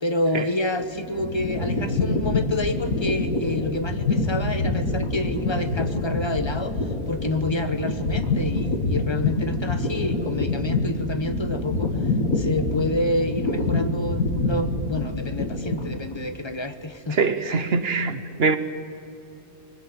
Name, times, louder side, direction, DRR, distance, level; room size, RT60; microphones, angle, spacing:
voice 1, 0.0-6.8 7.1-11.9 12.3-17.2, left 2 dB, 20° left, 0.9 m, -28 dB
sound 1, 0.8-16.2, left 2 dB, 75° left, 2.4 m, -26 dB
voice 2, 17.2-18.6, right 4 dB, 50° right, 1.1 m, -23 dB
21.5 x 19.5 x 8.6 m
omnidirectional pair, 1.5 m